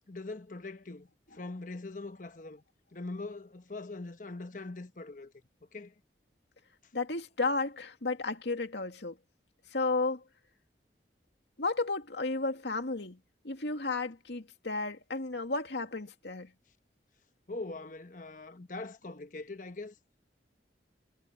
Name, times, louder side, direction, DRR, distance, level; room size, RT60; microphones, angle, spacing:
voice 1, 0.1-1.1 1.3-2.6 2.9-5.3 5.7-5.9 17.5-19.9, left 2 dB, 45° left, 1.1 m, -42 dB
voice 2, 6.9-9.2 9.7-10.2 11.6-13.2 13.4-16.5, left 3 dB, 80° left, 2.2 m, -33 dB
head